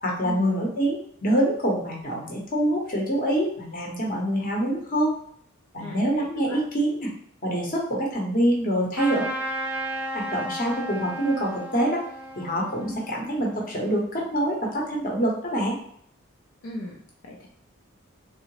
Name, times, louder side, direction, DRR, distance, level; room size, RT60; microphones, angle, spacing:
voice 1, 0.0-5.2 5.7-7.1 7.4-9.3 10.1-12.0 12.4-15.8, right 1 dB, 40° left, -2 dB, 0.8 m, -25 dB
voice 2, 5.8-6.6 12.8-13.0 16.6-17.5, left 1 dB, 65° left, -1 dB, 0.5 m, -38 dB
Trumpet, 8.9-14.0, right 1 dB, 5° right, 0.3 m, -34 dB
3.6 x 2.0 x 3.0 m, 0.65 s
head